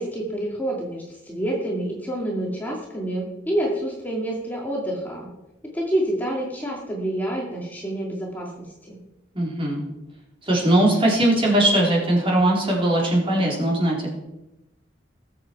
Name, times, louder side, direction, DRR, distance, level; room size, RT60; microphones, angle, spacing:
voice 1, 0.0-5.3 5.7-9.0, right 1 dB, 10° left, -3 dB, 2.2 m, -28 dB
voice 2, 9.4-9.8 10.5-14.1, right 1 dB, 30° right, -3 dB, 4.0 m, -20 dB
20.0 x 7.8 x 4.7 m, 0.93 s
head